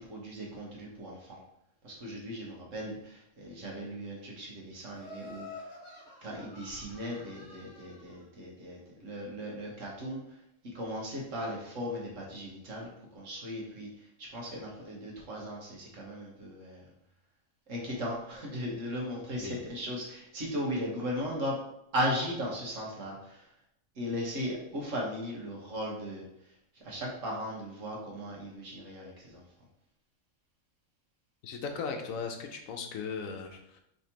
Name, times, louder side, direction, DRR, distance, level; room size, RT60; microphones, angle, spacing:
voice 1, 0.0-1.4 1.8-5.5 6.2-10.2 10.7-12.9 13.1-13.9 14.2-16.8 17.7-21.6 21.9-23.4 24.0-26.2 26.8-29.4, equal, 60° right, -3 dB, 1.5 m, -37 dB
Laughter, 4.9-8.1, left 2 dB, 30° left, 1.2 m, -48 dB
voice 2, 31.4-33.8, left 5 dB, 75° left, 4 dB, 1.1 m, -37 dB
5.0 x 3.4 x 2.9 m, 0.78 s
omnidirectional pair, 1.5 m